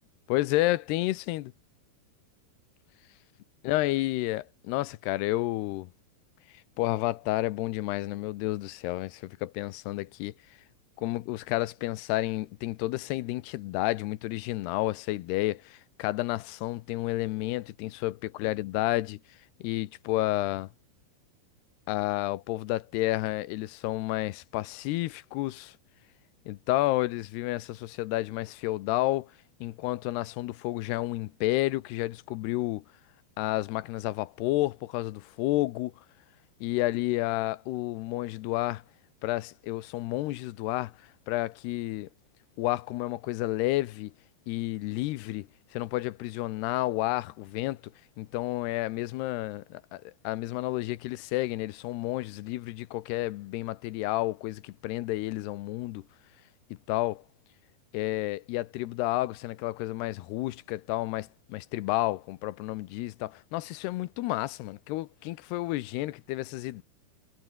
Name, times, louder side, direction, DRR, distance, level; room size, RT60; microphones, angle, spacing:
voice 1, 0.3-1.5 3.6-5.9 6.8-10.3 11.0-19.2 19.6-20.7 21.9-25.8 26.5-29.3 29.6-32.8 33.4-35.9 36.6-38.8 39.2-41.0 41.3-42.1 42.6-44.1 44.5-47.9 48.2-56.0 56.9-57.2 57.9-66.8, left 17 dB, 80° left, 2.9 m, -30 dB
omnidirectional pair, 4.8 m